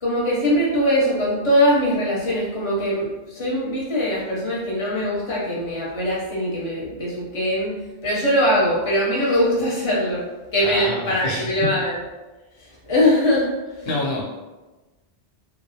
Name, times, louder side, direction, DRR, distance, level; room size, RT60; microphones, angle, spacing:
voice 1, 0.0-7.7 8.0-10.2 10.5-12.0 12.6-13.5 13.8-13.9, equal, 35° left, -5 dB, 0.7 m, -21 dB
voice 2, 10.6-11.5 13.9-14.2, left 2 dB, 75° left, -4 dB, 0.8 m, -27 dB
2.4 x 2.0 x 2.7 m, 1.2 s
omnidirectional pair, 1.0 m